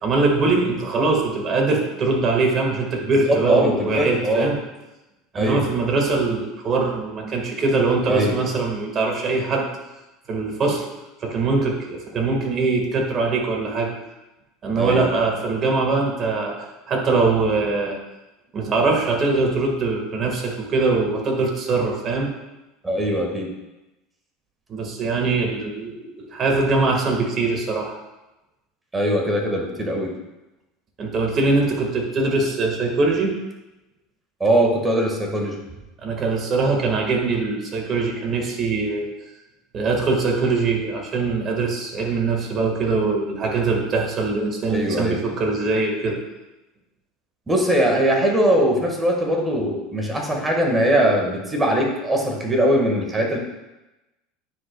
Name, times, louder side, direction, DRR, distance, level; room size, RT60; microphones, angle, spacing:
voice 1, 0.0-4.6 5.3-9.7 10.3-10.9 11.2-13.9 14.6-18.0 18.5-22.3 24.7-28.0 31.0-33.3 36.0-39.1 39.7-46.2, right 3 dB, 40° right, 1 dB, 1.8 m, -22 dB
voice 2, 3.0-4.5 5.3-5.6 8.1-8.4 14.8-15.0 22.8-23.5 28.9-30.1 34.4-35.6 44.6-45.2 47.5-53.4, right 1 dB, 15° right, 1 dB, 1.7 m, -21 dB
9.5 x 5.2 x 2.3 m, 1.0 s
hypercardioid pair, 90°, 0 cm